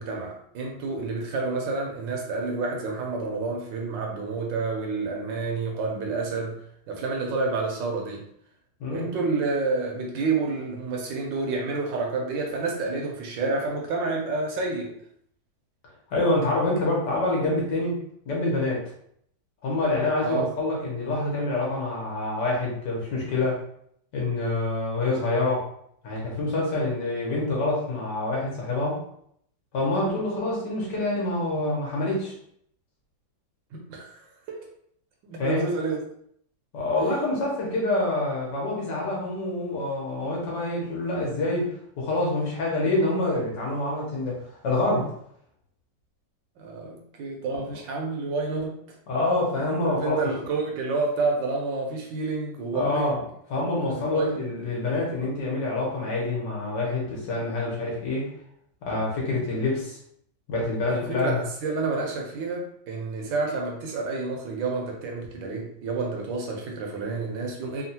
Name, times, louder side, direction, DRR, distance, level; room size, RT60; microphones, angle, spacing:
voice 1, 0.0-6.6 6.9-8.2 8.9-14.9 20.2-20.5 33.7-34.2 34.5-34.6 35.2-36.0 46.6-48.8 50.0-53.1 53.9-54.5 60.9-67.8, right 3 dB, 75° right, 0 dB, 1.3 m, -29 dB
voice 2, 16.1-18.0 18.2-18.9 19.6-23.6 24.1-25.7 26.0-29.0 29.7-32.3 35.4-35.7 36.7-41.7 42.0-44.4 44.6-45.1 49.1-50.3 52.7-53.2 53.5-58.3 58.8-60.0 60.5-61.4, left 2 dB, 65° left, -3 dB, 1.5 m, -26 dB
3.6 x 2.3 x 2.7 m, 0.68 s
omnidirectional pair, 2.2 m